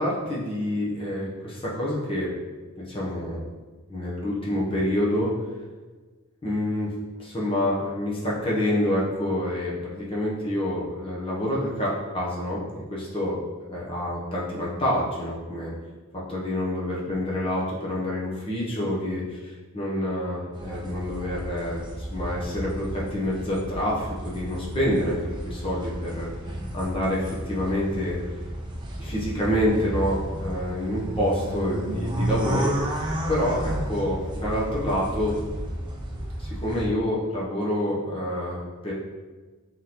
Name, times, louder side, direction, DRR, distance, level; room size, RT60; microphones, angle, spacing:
voice 1, 0.0-2.3 2.8-3.4 3.9-5.3 6.4-6.9 7.2-13.4 13.7-15.7 16.1-25.2 25.4-26.3 26.7-28.2 29.0-32.7 33.3-35.3 36.4-38.9, left 1 dB, 25° left, -5 dB, 0.7 m, -27 dB
sound 1, 20.5-36.9, right 1 dB, 20° right, 0.4 m, -32 dB
3.8 x 3.7 x 2.9 m, 1.3 s
head